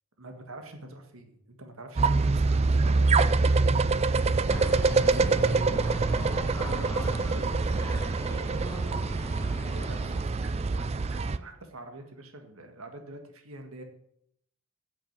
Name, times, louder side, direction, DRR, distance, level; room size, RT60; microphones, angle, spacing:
voice 1, 0.2-3.7 4.1-4.6 5.1-8.5 9.6-13.8, right 2 dB, 85° right, 5 dB, 1.7 m, -45 dB
sound 1, 2.0-11.4, right 3 dB, 30° right, 0.4 m, -25 dB
sound 2, 4.5-10.2, left 1 dB, 15° left, 1.3 m, -41 dB
8.7 x 7.4 x 8.6 m, 0.73 s
head